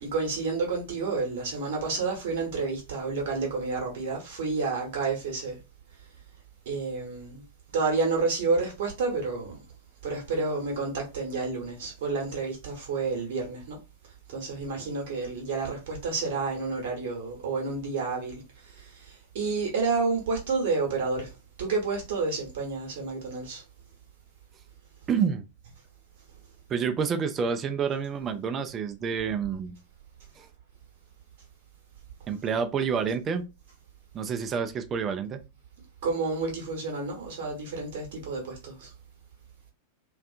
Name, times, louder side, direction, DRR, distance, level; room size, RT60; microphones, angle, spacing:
voice 1, 0.0-5.6 6.6-7.4 7.7-9.6 10.0-13.8 14.3-21.3 21.6-23.6 36.0-38.9, right 4 dB, 55° right, 1.0 m, -30 dB
voice 2, 25.1-25.4 26.7-29.8 30.4-30.5 32.3-33.4 34.1-35.4, right 6 dB, 25° right, 0.4 m, -28 dB
2.5 x 2.3 x 2.4 m
figure-of-eight pair, 90°, 0 cm